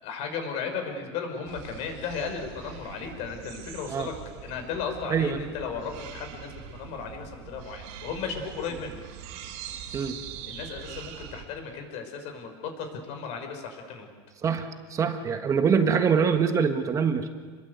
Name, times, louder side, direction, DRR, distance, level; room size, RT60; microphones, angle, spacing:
voice 1, 0.0-4.1 4.4-9.0 10.5-14.1, left 5 dB, 45° left, 5 dB, 5.5 m, -35 dB
sound 1, 1.4-11.4, right 8 dB, 55° right, 3.9 m, -43 dB
voice 2, 5.1-5.4 9.9-10.2 14.4-17.3, right 6 dB, 20° right, 7 dB, 1.5 m, -24 dB
28.5 x 22.0 x 8.2 m, 1.5 s
supercardioid pair, 155°, 15 cm